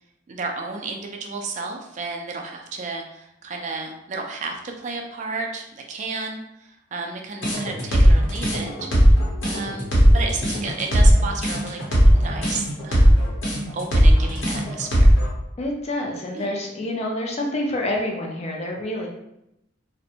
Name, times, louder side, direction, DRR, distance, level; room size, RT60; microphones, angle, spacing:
voice 1, 0.3-8.9 9.4-11.9 12.1-13.2 13.7-15.2 16.3-16.5, right 4 dB, 35° right, 2 dB, 0.3 m, -32 dB
sound 1, 7.4-15.3, equal, 65° left, 0.8 m, -17 dB
voice 2, 15.6-19.1, left 1 dB, 30° left, 0 dB, 0.4 m, -27 dB
2.5 x 2.1 x 2.7 m, 0.83 s
head